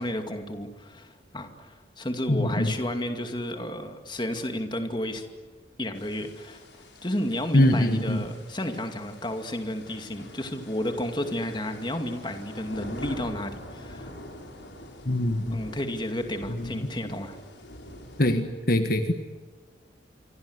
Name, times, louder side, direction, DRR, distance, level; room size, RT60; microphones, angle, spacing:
voice 1, 0.0-5.3 5.8-6.6 7.0-14.1 15.5-17.4, left 1 dB, 25° left, 6 dB, 2.4 m, -32 dB
voice 2, 2.3-2.7 7.5-8.2 15.0-15.6 18.2-19.1, left 1 dB, 50° left, 7 dB, 1.6 m, -22 dB
sound 1, 5.9-18.4, left 1 dB, 80° left, 6.4 m, -45 dB
28.0 x 24.0 x 8.1 m, 1.5 s
head